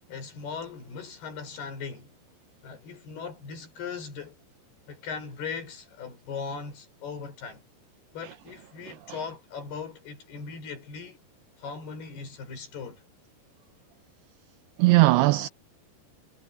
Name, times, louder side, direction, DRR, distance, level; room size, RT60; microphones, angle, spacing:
voice 1, 0.1-2.1 2.6-4.4 4.9-7.6 8.1-11.2 11.6-13.0, left 5 dB, 60° left, 7.1 m, -39 dB
voice 2, 8.9-9.2 14.8-15.5, right 20 dB, 85° right, 2.4 m, -20 dB
omnidirectional pair, 5.1 m